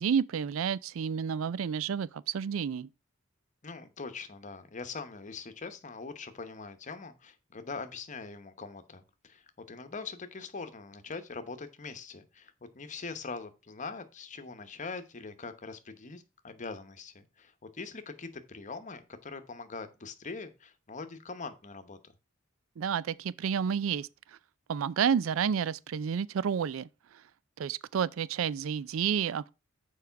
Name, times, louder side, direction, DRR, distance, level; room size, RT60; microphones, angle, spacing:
voice 1, 0.0-2.9 22.8-24.1 24.7-26.9 27.6-29.5, right 7 dB, 90° right, 0.4 m, -30 dB
voice 2, 3.6-22.1, left 4 dB, 40° left, 0.9 m, -42 dB
6.9 x 4.8 x 5.7 m
head